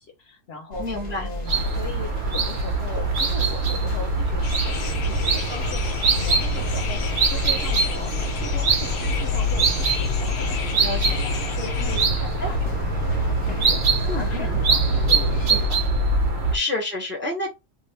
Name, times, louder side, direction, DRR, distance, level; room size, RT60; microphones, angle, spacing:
voice 1, 0.0-5.8 6.1-8.1 8.4-12.8 13.1-13.2 13.4-16.5, left 3 dB, 60° left, 0.8 m, -39 dB
sound 1, 0.7-15.7, left 2 dB, 30° left, 0.6 m, -34 dB
voice 2, 0.8-1.3 10.8-11.2 11.8-12.0 12.4-12.5 14.0-14.6 15.5-15.6 16.5-17.5, left 2 dB, 10° right, 0.6 m, -29 dB
sound 2, 1.5-16.6, right 2 dB, 60° right, 0.9 m, -23 dB
sound 3, 4.4-12.1, left 7 dB, 85° left, 1.1 m, -36 dB
2.7 x 2.4 x 3.2 m
omnidirectional pair, 1.4 m